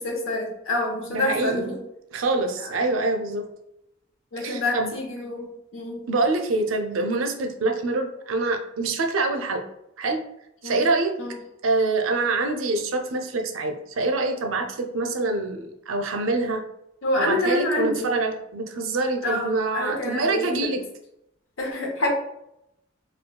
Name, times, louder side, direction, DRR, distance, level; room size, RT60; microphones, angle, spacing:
voice 1, 0.0-1.8 2.6-2.7 4.3-6.0 10.6-10.8 11.2-11.4 17.0-18.2 19.2-20.7 21.6-22.1, left 1 dB, 80° left, 0 dB, 0.8 m, -27 dB
voice 2, 1.1-1.7 2.1-3.5 4.4-4.9 6.1-9.6 10.0-10.2 10.6-11.2 11.6-16.6 17.2-20.8, right 3 dB, 85° right, 4 dB, 0.5 m, -25 dB
5.1 x 2.3 x 2.2 m, 0.83 s
head